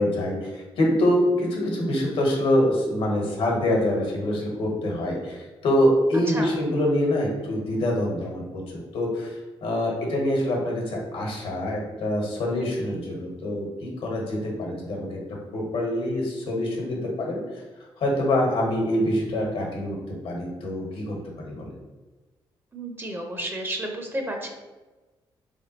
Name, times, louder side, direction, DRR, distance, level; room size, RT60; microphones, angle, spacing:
voice 1, 0.0-17.4 18.0-21.7, left 1 dB, 75° left, -1 dB, 1.2 m, -25 dB
voice 2, 22.7-24.5, right 1 dB, 20° right, 2 dB, 0.7 m, -31 dB
3.4 x 3.4 x 2.8 m, 1.2 s
supercardioid pair, 60°, 10 cm